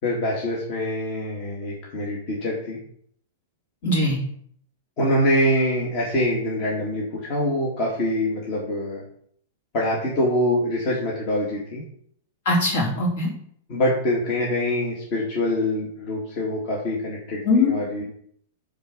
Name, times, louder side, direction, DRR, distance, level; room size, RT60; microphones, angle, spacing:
voice 1, 0.0-2.8 5.0-9.0 9.7-11.8 13.7-18.0, left 1 dB, 45° left, -4 dB, 2.9 m, -24 dB
voice 2, 3.8-4.2 12.5-13.3 17.4-17.7, left 2 dB, 70° left, -2 dB, 4.1 m, -20 dB
9.6 x 4.8 x 6.7 m, 0.64 s
hypercardioid pair, 125°, 0 cm